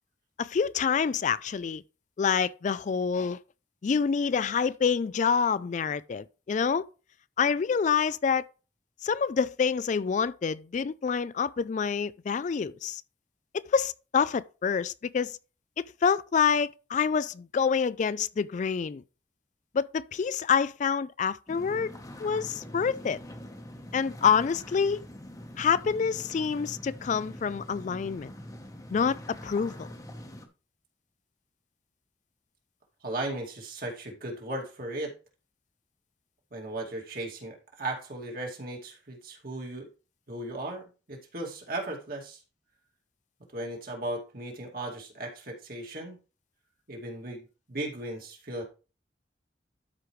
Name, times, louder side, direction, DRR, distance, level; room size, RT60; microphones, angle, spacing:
voice 1, 0.4-1.8 2.2-3.4 3.8-6.8 7.4-8.4 9.0-13.0 13.5-15.3 15.8-19.0 19.7-21.9 22.2-23.2 23.9-25.0 25.6-28.3 28.9-29.9, left 6 dB, 45° left, 0.3 m, -27 dB
sound 1, 21.5-30.5, left 1 dB, 20° left, 1.1 m, -44 dB
voice 2, 33.0-35.1 36.5-39.9 40.3-42.4 43.5-46.2 46.9-48.6, right 1 dB, 55° right, 2.4 m, -36 dB
12.5 x 5.0 x 3.2 m
head